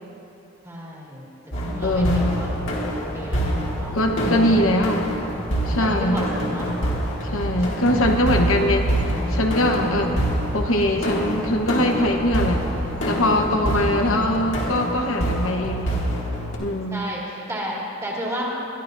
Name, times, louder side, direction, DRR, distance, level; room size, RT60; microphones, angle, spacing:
voice 1, 0.6-1.3 1.6-2.5 3.1-4.0 4.4-4.9 5.8-6.7 7.5-7.9 9.7-10.1 13.7-14.1 16.9-18.5, equal, 15° right, -5 dB, 2.2 m, -32 dB
sound 1, 1.5-16.6, equal, 65° left, 2.3 m, -26 dB
voice 2, 1.8-2.4 3.9-5.1 5.7-6.2 7.3-10.2 10.5-12.6 13.0-15.9 16.6-17.1, left 1 dB, 85° left, 2 dB, 1.1 m, -22 dB
sound 2, 1.9-14.8, equal, 5° left, 0.8 m, -35 dB
22.5 x 12.0 x 2.7 m, 2.9 s
head